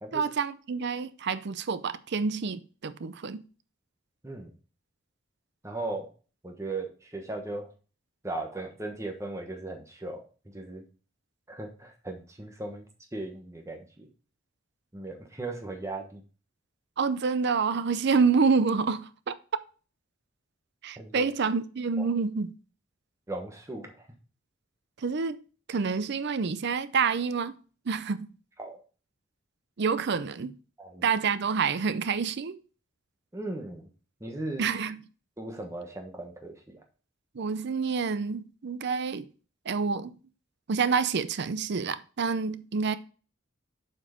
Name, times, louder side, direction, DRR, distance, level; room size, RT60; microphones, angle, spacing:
voice 1, 0.1-3.4 17.0-19.3 20.8-22.5 25.0-25.4 25.7-27.5 27.9-28.3 29.8-30.5 31.0-32.6 34.6-35.0 37.3-39.3 39.7-40.1 40.7-43.0, right 5 dB, 60° right, 0.5 m, -28 dB
voice 2, 5.6-6.1 6.4-7.7 8.2-10.2 10.5-10.8 11.5-12.8 13.1-14.1 14.9-16.2 21.0-21.3 22.0-22.1 23.3-24.1 28.6-28.8 30.8-31.1 33.3-33.9 34.2-34.7 35.4-36.8, right 2 dB, 15° right, 1.1 m, -37 dB
7.5 x 4.5 x 5.0 m
head